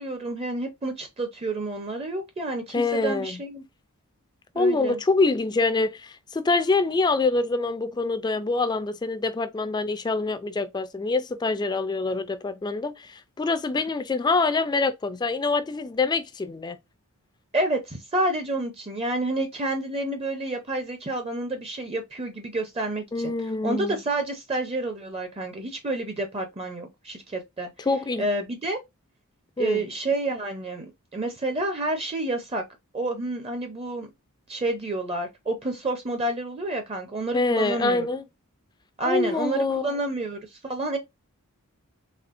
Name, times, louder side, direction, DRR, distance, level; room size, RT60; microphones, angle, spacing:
voice 1, 0.0-3.6 4.5-5.0 17.5-23.3 23.6-27.7 28.2-28.8 29.6-32.6 32.9-34.1 34.5-38.1 39.0-41.0, right 2 dB, 25° right, 0.6 m, -29 dB
voice 2, 2.7-3.4 4.6-16.8 23.1-24.0 27.8-28.2 29.6-29.8 37.3-38.2 39.0-39.9, left 3 dB, 20° left, 0.3 m, -25 dB
4.2 x 3.2 x 2.5 m
head